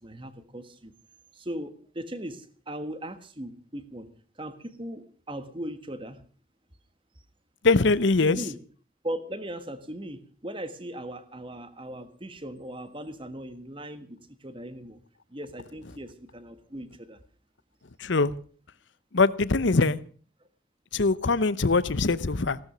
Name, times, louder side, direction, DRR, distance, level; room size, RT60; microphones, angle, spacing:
voice 1, 0.0-0.9 1.3-4.1 4.4-6.2 8.2-8.6 9.0-15.0 15.3-17.2, right 1 dB, 25° right, 1.5 m, -38 dB
voice 2, 7.6-8.4 18.0-18.3 19.1-20.0 20.9-22.6, left 3 dB, 60° left, 0.8 m, -22 dB
17.5 x 12.5 x 6.3 m
head